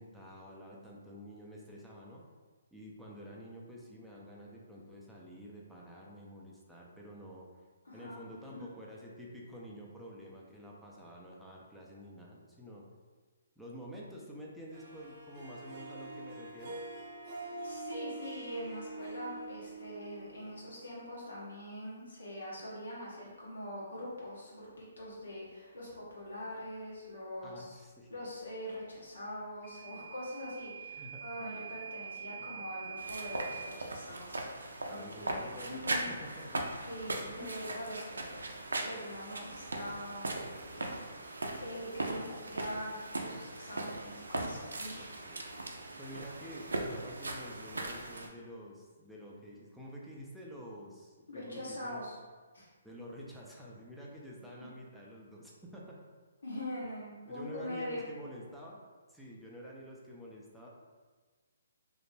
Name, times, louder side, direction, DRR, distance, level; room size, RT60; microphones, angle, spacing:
voice 1, 0.0-2.2 2.7-7.5 7.9-12.8 13.6-16.8 27.4-28.2 30.9-31.2 32.4-32.7 34.8-36.6 37.4-37.6 44.9-45.4 46.0-52.0 52.8-56.0 57.3-58.8 59.1-60.7, equal, ahead, -5 dB, 0.4 m, -49 dB
voice 2, 7.8-8.2 8.5-8.6 17.6-27.8 28.1-36.1 36.9-38.5 38.8-45.2 51.3-52.2 52.5-52.7 56.4-58.0, equal, 85° left, -6 dB, 1.0 m, -43 dB
Harp, 14.7-21.0, right 2 dB, 40° right, 0.7 m, -45 dB
Microwave oven / Alarm, 29.6-33.7, right 8 dB, 35° left, 0.7 m, -45 dB
sound 1, 33.0-48.3, right 2 dB, 90° right, 0.4 m, -39 dB
2.5 x 2.0 x 3.2 m, 1.4 s
hypercardioid pair, 145°, 0 cm